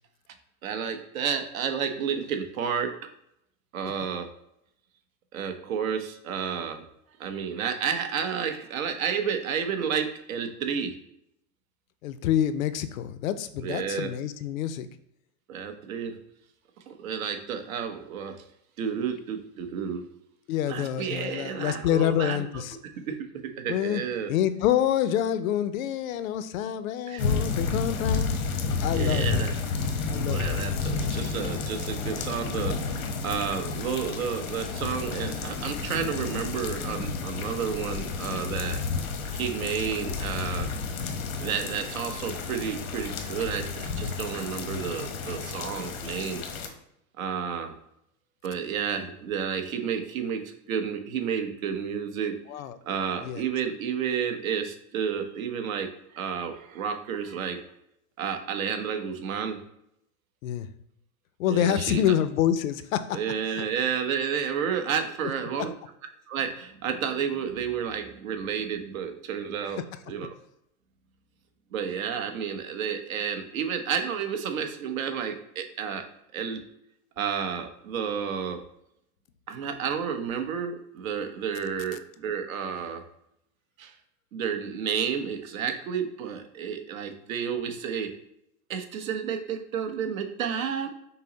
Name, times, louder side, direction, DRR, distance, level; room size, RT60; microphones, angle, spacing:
voice 1, 0.6-2.9 3.7-4.3 5.3-6.8 7.2-10.9 13.6-14.1 15.5-16.2 16.9-18.4 18.8-20.0 20.7-22.6 23.1-23.2 23.6-24.3 27.1-27.2 28.9-30.0 30.3-38.8 39.3-40.7 41.4-46.4 47.2-47.7 48.4-52.4 52.9-57.6 58.2-59.6 61.5-62.0 63.1-65.7 66.3-70.3 71.7-76.0 76.3-76.6 77.2-78.6 79.5-83.0 83.8-83.9 84.3-88.1 88.7-90.9, right 7 dB, 75° right, 6 dB, 0.9 m, -31 dB
voice 2, 12.0-14.9 20.5-22.8 23.7-24.0 24.3-28.4 28.8-29.4 30.1-30.6 52.5-52.8 53.2-53.4 60.4-60.7 61.4-63.2 63.5-63.6, left 10 dB, 75° left, 12 dB, 0.5 m, -27 dB
sound 1, 27.2-46.7, left 4 dB, 90° left, 0.9 m, -31 dB
5.6 x 2.0 x 3.8 m, 0.77 s
supercardioid pair, 160°, 41 cm